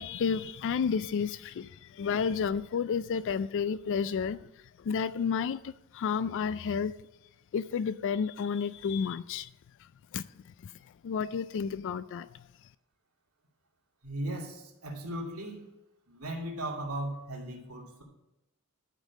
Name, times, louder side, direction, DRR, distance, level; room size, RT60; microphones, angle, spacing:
voice 1, 0.0-7.0 7.5-9.5 9.8-12.7, left 6 dB, 60° left, 0.3 m, -32 dB
voice 2, 14.0-15.7 16.1-18.0, right 1 dB, 90° right, 2.6 m, -37 dB
12.0 x 5.4 x 7.3 m
head